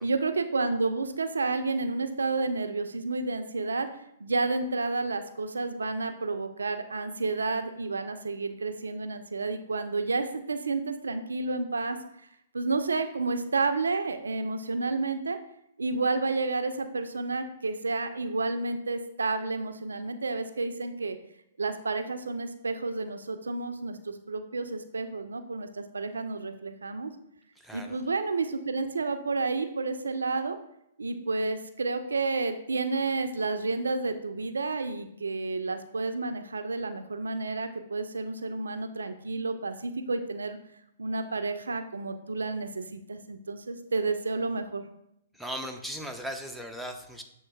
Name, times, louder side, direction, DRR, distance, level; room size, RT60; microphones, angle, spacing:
voice 1, 0.0-3.9 4.2-12.0 12.5-15.4 15.8-21.2 21.6-27.1 27.7-30.6 31.0-40.6 41.0-44.8, right 3 dB, 75° right, 8 dB, 0.4 m, -30 dB
voice 2, 27.6-28.0 45.3-47.2, equal, ahead, 3 dB, 0.4 m, -38 dB
7.1 x 3.0 x 2.2 m, 0.78 s
figure-of-eight pair, 115°, 0 cm